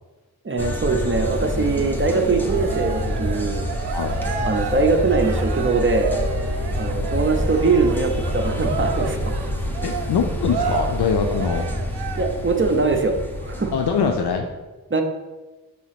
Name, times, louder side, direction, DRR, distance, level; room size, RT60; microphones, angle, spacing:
voice 1, 0.4-3.7 4.4-6.1 6.7-9.3 12.1-13.7 14.9-15.0, right 3 dB, 30° right, 3 dB, 0.7 m, -22 dB
sound 1, 0.6-14.4, equal, 5° left, 0.8 m, -27 dB
Cheering, 2.5-12.5, right 5 dB, 90° right, 0.6 m, -31 dB
voice 2, 9.8-11.7 13.7-14.5, left 6 dB, 85° left, 4 dB, 0.6 m, -23 dB
6.3 x 3.0 x 5.8 m, 1.2 s
wide cardioid pair, 95°, 38 cm